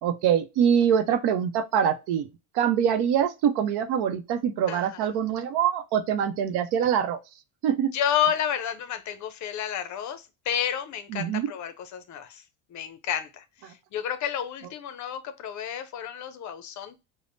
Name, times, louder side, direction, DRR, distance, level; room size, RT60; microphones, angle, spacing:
voice 1, 0.0-2.3 2.5-7.2 7.6-7.9 11.1-11.5, right 8 dB, 75° right, 0.7 m, -24 dB
voice 2, 4.7-5.1 7.9-12.4 12.7-17.0, left 9 dB, 45° left, 0.5 m, -31 dB
5.0 x 2.1 x 2.5 m
cardioid pair, 120°, 40 cm